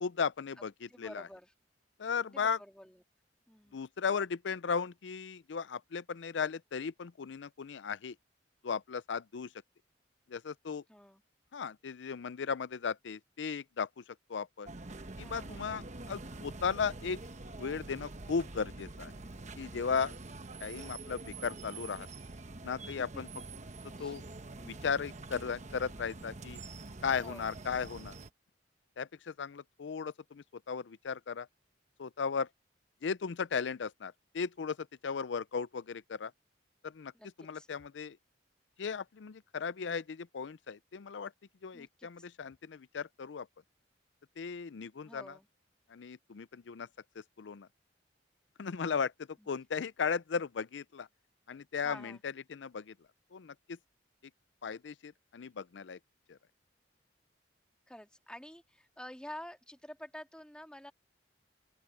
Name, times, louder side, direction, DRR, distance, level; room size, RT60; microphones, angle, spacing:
voice 1, 0.0-1.3 2.0-2.6 3.7-8.1 8.6-9.5 10.3-10.8 11.5-14.0 14.3-14.7 15.2-17.2 17.6-19.1 19.6-20.2 20.6-22.1 22.6-23.3 24.0-24.2 24.6-26.6 27.0-28.1 29.0-31.5 32.0-32.5 33.0-36.3 36.8-37.1 37.4-38.2 38.8-41.3 41.6-43.5 44.4-45.4 45.9-46.9 47.4-47.7 48.6-49.1 49.5-51.1 51.5-52.9 53.3-53.8 54.6-56.0 56.3-56.4, left 6 dB, 75° left, 0.5 m, -36 dB
voice 2, 0.9-1.5 2.2-3.0 3.5-3.8 10.9-11.2 15.2-15.8 23.1-23.2 24.0-24.2 24.6-24.9 27.1-27.5 37.1-37.7 41.7-42.3 45.0-45.5 49.4-49.5 51.8-52.2 57.9-60.9, left 1 dB, 5° left, 2.2 m, -50 dB
sound 1, 14.7-28.3, right 2 dB, 40° right, 1.1 m, -46 dB
open air
head